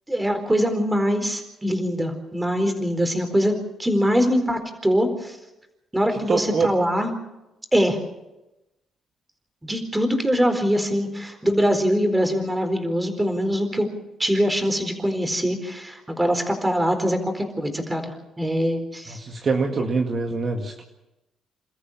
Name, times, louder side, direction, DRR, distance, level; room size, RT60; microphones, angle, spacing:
voice 1, 0.1-3.5 3.8-5.4 5.9-7.1 7.7-8.0 9.6-13.9 14.2-19.2 19.7-19.8, equal, 10° right, 6 dB, 4.3 m, -23 dB
voice 2, 6.3-6.7 19.1-20.8, right 4 dB, 45° right, 2 dB, 2.0 m, -24 dB
28.0 x 14.0 x 7.5 m, 0.97 s
cardioid pair, 90°, 0 cm